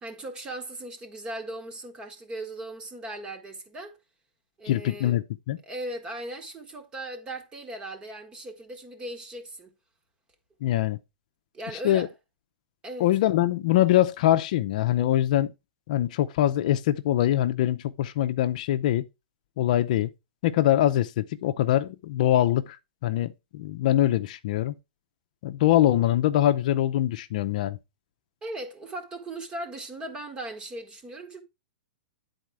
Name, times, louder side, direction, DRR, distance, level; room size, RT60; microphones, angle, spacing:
voice 1, 0.0-4.0 4.6-5.2 5.6-9.7 11.5-12.1 12.8-13.1 28.4-31.4, right 1 dB, 20° right, 1.6 m, -38 dB
voice 2, 4.7-5.6 10.6-11.0 11.8-12.1 13.0-15.5 15.9-19.1 19.6-20.1 20.4-22.8 23.0-24.7 25.4-27.8, left 13 dB, 55° left, 0.6 m, -23 dB
10.0 x 4.2 x 4.7 m
hypercardioid pair, 145°, 5 cm